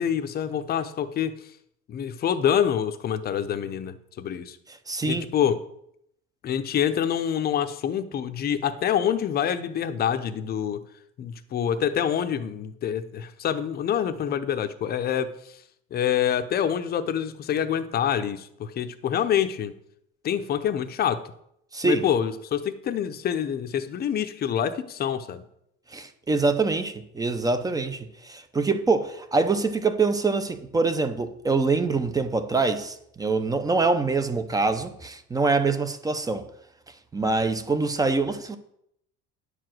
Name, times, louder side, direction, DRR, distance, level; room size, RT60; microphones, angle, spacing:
voice 1, 0.0-1.4 1.9-4.6 5.1-5.6 6.4-10.8 11.2-15.3 15.9-19.7 20.2-21.2 21.8-25.4, left 9 dB, 30° left, 0.7 m, -26 dB
voice 2, 4.7-5.3 21.7-22.0 25.9-36.4 37.1-38.6, right 3 dB, 10° right, 0.6 m, -25 dB
10.0 x 4.9 x 7.6 m
cardioid pair, 145°, 30 cm